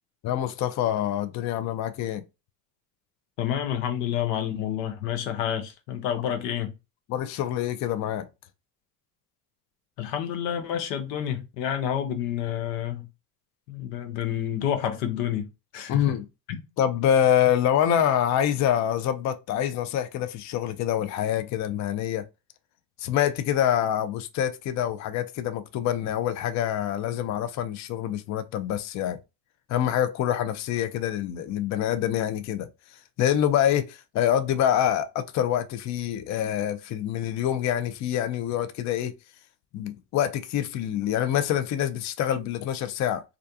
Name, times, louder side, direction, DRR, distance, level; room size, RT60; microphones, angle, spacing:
voice 1, 0.2-2.2 7.1-8.3 15.9-16.3 16.8-22.2 23.0-29.2 29.7-32.7 33.2-39.1 39.7-43.2, left 10 dB, 40° left, 0.4 m, -26 dB
voice 2, 3.4-6.7 10.0-13.1 13.7-16.1 16.5-16.6, left 10 dB, 85° left, 0.7 m, -29 dB
2.4 x 2.1 x 2.6 m
hypercardioid pair, 70°, 46 cm